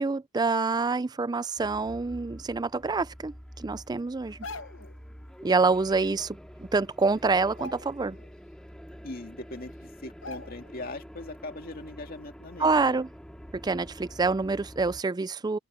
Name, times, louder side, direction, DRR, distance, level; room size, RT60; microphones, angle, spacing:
voice 1, 0.0-4.4 5.4-8.2 12.6-13.1 13.5-15.6, right 4 dB, 20° right, 0.4 m, -27 dB
sound 1, 1.6-15.0, equal, 5° left, 2.1 m, -47 dB
sound 2, 4.2-5.0 6.4-6.5 6.8-7.1 7.5-8.3 8.7-8.8 9.6-9.7 10.2-10.8 11.2-11.4, left 3 dB, 70° left, 1.0 m, -43 dB
voice 2, 9.0-13.0, left 2 dB, 50° left, 2.2 m, -41 dB
open air
head